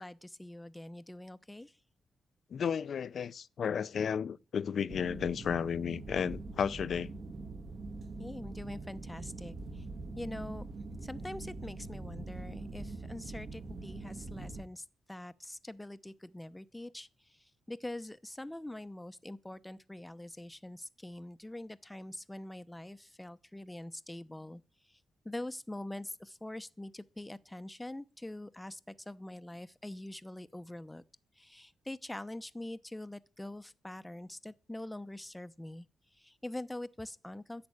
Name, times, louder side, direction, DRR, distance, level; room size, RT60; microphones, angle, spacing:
voice 1, 0.0-1.7 8.2-9.8 10.2-10.7 11.0-17.1 17.7-24.6 25.2-31.0 31.4-35.9 36.2-37.7, left 1 dB, 10° left, 0.8 m, -44 dB
voice 2, 2.5-7.1, left 7 dB, 60° left, 0.5 m, -33 dB
sound 1, 4.9-14.6, right 3 dB, 50° right, 2.2 m, -43 dB
10.5 x 7.7 x 8.4 m
cardioid pair, 100°, 0 cm